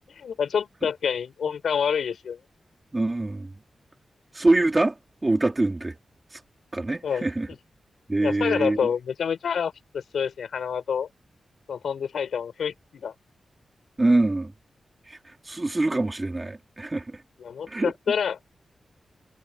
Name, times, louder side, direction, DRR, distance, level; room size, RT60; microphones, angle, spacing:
voice 1, 0.2-2.4 7.0-7.3 8.2-11.1 11.7-13.1 17.4-18.4, left 7 dB, 90° left, 6.1 m, -27 dB
voice 2, 2.9-3.5 4.4-4.9 5.2-5.9 6.7-7.5 8.1-8.8 14.0-14.5 15.5-17.2 17.7-17.9, right 2 dB, 25° right, 4.0 m, -24 dB
wide cardioid pair, 95°, 0 cm